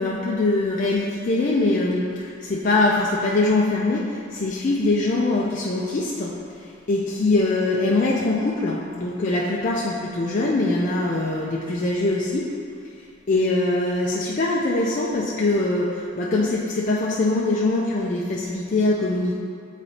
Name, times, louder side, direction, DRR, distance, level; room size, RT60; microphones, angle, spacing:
voice 1, 0.0-12.5 13.3-19.4, left 2 dB, 40° left, -4 dB, 0.4 m, -23 dB
8.4 x 4.1 x 2.8 m, 2.3 s
head